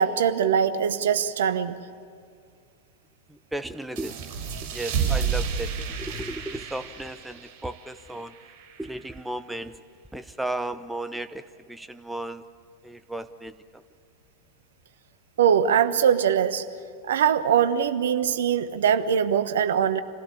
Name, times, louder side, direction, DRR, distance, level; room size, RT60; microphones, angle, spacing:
voice 1, 0.0-1.8 15.4-16.6 17.0-20.0, right 8 dB, 60° right, 12 dB, 1.0 m, -22 dB
voice 2, 3.3-4.2 4.6-8.4 8.8-9.8 10.1-12.5 12.8-13.8, right 1 dB, 5° right, 12 dB, 0.7 m, -35 dB
sound 1, 3.9-9.2, right 7 dB, 45° right, 5.6 m, -31 dB
26.5 x 17.0 x 8.6 m, 2.2 s
figure-of-eight pair, 90°, 0 cm